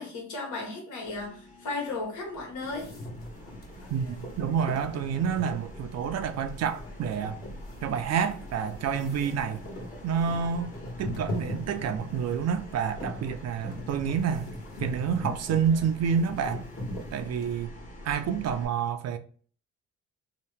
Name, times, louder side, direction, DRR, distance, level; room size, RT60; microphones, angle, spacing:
voice 1, 0.0-2.9, left 3 dB, 75° left, 1.4 m, -35 dB
sound 1, 1.0-18.6, equal, 25° left, 1.0 m, -46 dB
sound 2, 2.6-17.6, left 1 dB, 45° left, 1.3 m, -40 dB
voice 2, 3.9-7.4 7.8-9.6 10.0-14.5 14.8-16.7 17.1-17.7 18.0-19.2, right 7 dB, 60° right, 0.4 m, -28 dB
2.8 x 2.2 x 3.3 m
cardioid pair, 90°, 30 cm